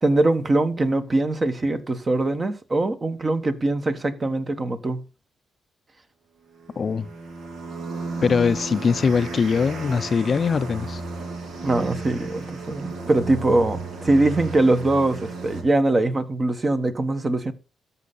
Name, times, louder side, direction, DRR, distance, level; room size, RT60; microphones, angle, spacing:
voice 1, 0.0-5.0 11.6-17.5, right 2 dB, 30° right, 1.3 m, -22 dB
sound 1, 6.5-15.6, right 3 dB, 80° right, 2.4 m, -34 dB
voice 2, 6.8-7.1 8.2-11.0, left 5 dB, 50° left, 0.5 m, -21 dB
13.5 x 5.6 x 4.1 m
cardioid pair, 75°, 0 cm